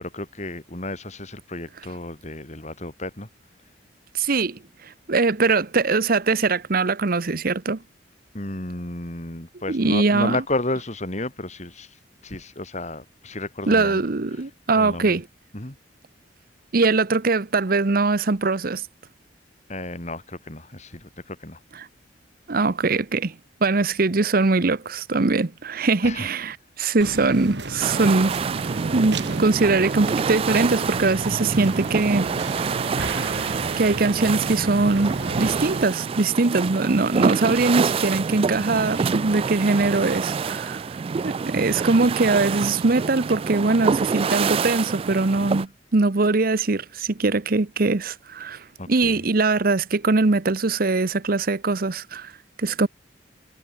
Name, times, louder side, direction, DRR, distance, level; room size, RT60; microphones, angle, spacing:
voice 1, 0.0-3.3 8.3-14.0 14.3-14.4 14.7-15.1 15.5-15.7 19.7-21.6 26.0-26.3 48.8-49.2, left 2 dB, 40° left, 4.3 m, -32 dB
voice 2, 4.1-7.8 9.7-10.4 13.7-15.2 16.7-18.8 22.5-23.4 23.6-28.3 28.9-32.3 33.4-40.8 41.2-52.3 52.6-52.9, right 3 dB, 55° right, 0.9 m, -22 dB
sound 1, 27.0-35.8, right 2 dB, 70° right, 5.1 m, -33 dB
sound 2, 27.8-45.7, right 5 dB, 30° right, 0.3 m, -27 dB
head